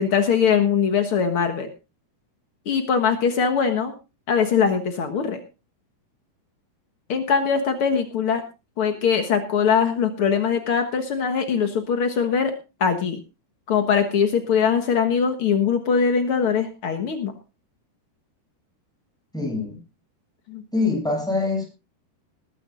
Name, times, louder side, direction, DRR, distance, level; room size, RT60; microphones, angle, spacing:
voice 1, 0.0-1.7 2.6-3.9 4.3-5.4 7.1-8.4 8.8-12.5 12.8-13.2 13.7-17.3 20.5-20.6, left 6 dB, 85° left, 6 dB, 1.2 m, -21 dB
voice 2, 19.3-19.8 20.7-21.6, left 3 dB, ahead, 0 dB, 7.3 m, -24 dB
20.0 x 13.5 x 2.5 m, 0.29 s
omnidirectional pair, 4.7 m